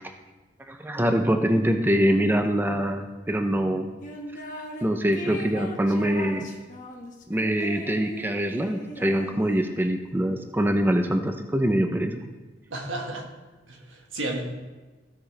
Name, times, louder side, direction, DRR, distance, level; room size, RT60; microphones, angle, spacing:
voice 1, 0.7-3.9 4.8-6.5 7.3-12.3, equal, 10° right, 5 dB, 0.5 m, -24 dB
sound 1, 4.0-4.8 5.1-9.8, equal, 45° left, 1.3 m, -39 dB
voice 2, 12.7-13.3 13.7-14.4, right 2 dB, 85° right, 1 dB, 1.6 m, -32 dB
16.0 x 6.1 x 3.2 m, 1.2 s
head